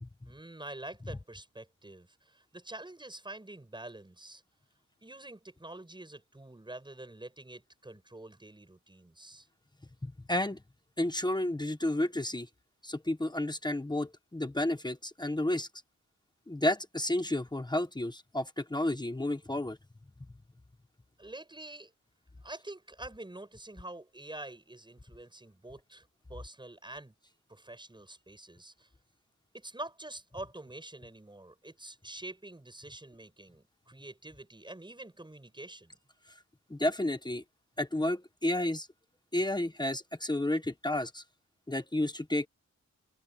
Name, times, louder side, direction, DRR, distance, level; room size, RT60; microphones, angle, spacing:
voice 1, 0.3-4.4 5.0-9.5 21.2-21.9 22.4-27.1 27.5-28.9 29.5-36.0, right 2 dB, 15° right, 7.7 m, -46 dB
voice 2, 10.0-10.6 11.0-12.5 12.8-15.7 16.5-19.8 36.7-37.4 37.8-38.9 39.3-41.2 41.7-42.5, left 1 dB, 15° left, 1.1 m, -31 dB
wide cardioid pair, 155°, 31 cm